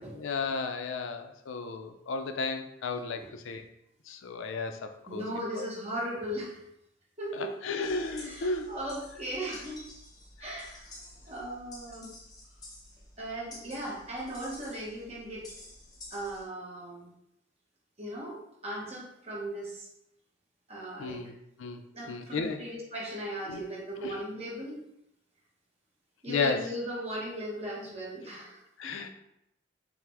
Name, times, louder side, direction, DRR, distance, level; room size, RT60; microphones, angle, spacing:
voice 1, 0.0-3.7 4.1-5.3 5.6-5.7 7.3-8.8 9.5-9.6 10.4-10.5 21.0-21.8 22.1-22.6 23.5-23.6 24.0-24.2 26.3-26.7 28.8-29.1, left 4 dB, 80° left, 7 dB, 0.4 m, -34 dB
voice 2, 5.1-6.6 7.2-7.5 8.2-9.8 10.4-10.9 11.3-12.1 13.2-15.4 16.1-17.1 18.0-19.9 20.7-21.2 21.9-24.8 26.2-29.0, right 1 dB, 30° right, -4 dB, 1.1 m, -38 dB
sound 1, 7.8-16.4, left 1 dB, 20° left, 0.7 m, -51 dB
5.8 x 2.0 x 3.5 m, 0.80 s
head